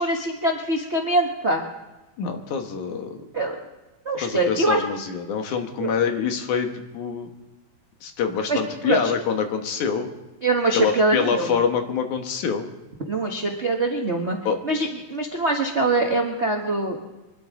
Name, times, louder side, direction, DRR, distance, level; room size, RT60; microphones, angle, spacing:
voice 1, 0.0-1.6 3.3-3.5 4.0-4.8 5.8-5.9 8.5-9.1 10.4-11.5 13.1-14.4 14.6-17.0, right 2 dB, 70° right, 1 dB, 0.6 m, -23 dB
voice 2, 2.2-3.2 4.2-7.3 8.0-10.1 10.7-12.7 14.5-14.6, left 6 dB, 70° left, 5 dB, 2.7 m, -25 dB
25.0 x 12.5 x 3.7 m, 1.1 s
omnidirectional pair, 3.7 m